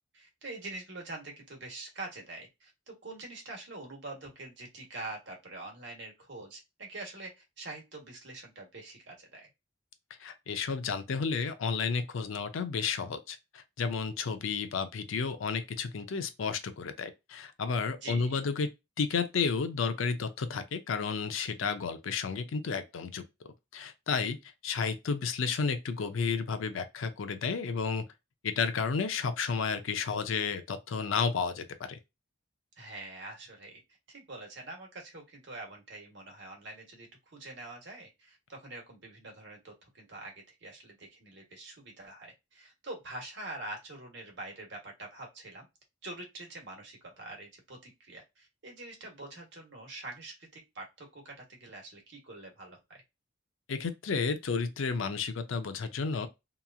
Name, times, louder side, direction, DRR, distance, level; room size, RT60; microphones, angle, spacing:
voice 1, 0.1-9.5 17.9-18.4 32.8-33.8 34.1-45.7 46.0-53.0, right 2 dB, 60° right, 1.1 m, -45 dB
voice 2, 10.2-18.7 19.0-23.2 23.7-24.4 24.6-28.0 28.4-32.0 53.7-56.3, left 5 dB, 75° left, 0.5 m, -32 dB
2.9 x 2.4 x 2.3 m
head